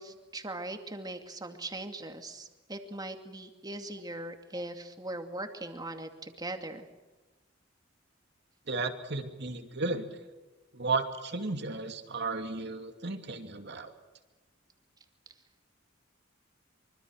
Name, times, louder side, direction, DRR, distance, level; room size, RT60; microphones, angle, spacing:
voice 1, 0.0-6.9, right 2 dB, 20° right, 6 dB, 2.5 m, -40 dB
voice 2, 8.7-10.0 10.7-13.9, right 3 dB, 60° right, 6 dB, 2.7 m, -34 dB
25.5 x 25.0 x 6.5 m, 1.2 s
head